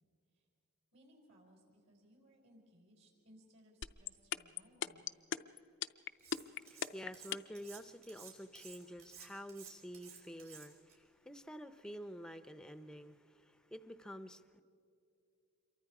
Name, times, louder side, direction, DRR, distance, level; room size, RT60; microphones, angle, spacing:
voice 1, 0.9-5.1, equal, 60° right, -1 dB, 5.4 m, -65 dB
sound 1, 3.8-7.6, left 9 dB, 55° left, 0.5 m, -37 dB
Cutlery silverware, 6.2-6.9 7.1-10.9, right 8 dB, 75° right, 4.9 m, -54 dB
voice 2, 6.3-14.6, equal, 5° left, 11 dB, 0.6 m, -49 dB
27.0 x 23.5 x 4.9 m, 2.6 s
head